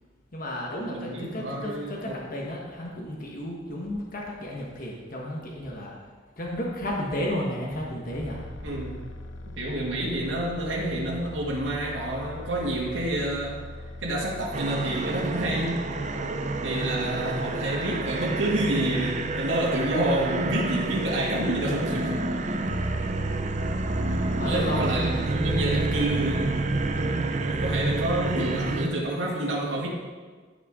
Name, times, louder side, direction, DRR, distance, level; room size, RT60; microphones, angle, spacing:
voice 1, 0.3-5.9 6.4-8.4 24.3-24.9 26.9-27.3, left 1 dB, 50° left, -3 dB, 1.4 m, -33 dB
voice 2, 0.9-2.2 8.6-8.9 9.6-13.6 14.0-15.9 16.6-22.2 23.0-23.1 24.4-26.5 27.5-29.9, right 1 dB, 90° right, -4 dB, 2.0 m, -28 dB
sound 1, 8.1-27.0, left 1 dB, 75° left, 0.7 m, -41 dB
sound 2, 14.5-28.9, right 2 dB, 40° right, 0.6 m, -28 dB
15.0 x 5.8 x 3.7 m, 1.4 s
head